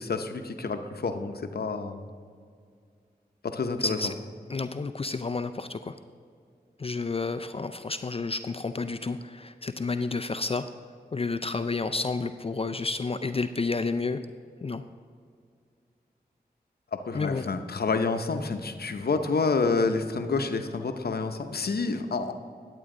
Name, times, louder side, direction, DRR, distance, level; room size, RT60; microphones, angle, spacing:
voice 1, 0.0-2.0 3.4-4.0 16.9-22.3, left 4 dB, 65° left, 7 dB, 0.7 m, -28 dB
voice 2, 3.8-4.1 4.5-6.0 6.8-10.7 11.1-14.2 14.6-14.8 17.1-17.5, left 3 dB, 35° left, 10 dB, 0.4 m, -30 dB
10.5 x 8.3 x 3.8 m, 2.2 s
cardioid pair, 45°, 17 cm